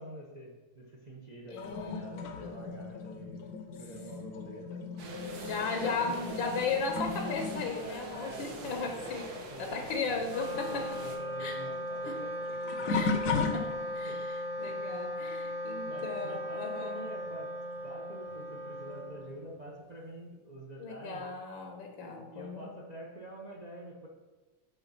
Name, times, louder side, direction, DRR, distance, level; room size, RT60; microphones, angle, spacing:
voice 1, 0.0-3.4 3.7-4.8 6.1-6.5 7.8-10.0 10.5-13.0 14.1-14.2 15.9-17.5 17.8-21.2 22.3-24.1, right 1 dB, 40° right, -2 dB, 0.6 m, -46 dB
voice 2, 1.5-2.1 2.4-2.8 5.3-9.3 9.6-10.9 11.4-11.6 12.0-12.2 12.9-13.7 13.9-14.3 14.6-17.0 20.8-22.8, left 4 dB, 80° left, 3 dB, 1.6 m, -36 dB
sound 1, 1.6-9.6 9.8-14.2 14.8-15.1 17.3-17.4 18.3-18.4, left 4 dB, 65° left, 1.1 m, -37 dB
sound 2, 5.0-11.2, right 1 dB, 60° right, 1.3 m, -44 dB
Wind instrument woodwind instrument, 10.2-19.8, equal, 85° right, 0.3 m, -38 dB
7.0 x 3.8 x 5.6 m, 1.2 s
omnidirectional pair, 2.1 m